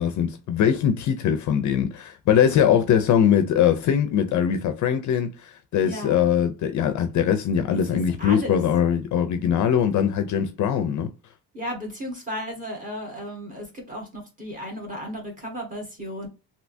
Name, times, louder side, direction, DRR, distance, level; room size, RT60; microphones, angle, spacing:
voice 1, 0.0-11.1, left 8 dB, 50° left, 0.5 m, -21 dB
voice 2, 5.8-6.3 7.7-8.6 11.5-16.3, equal, 20° right, 1.3 m, -34 dB
3.3 x 2.8 x 2.6 m
cardioid pair, 155°, 40 cm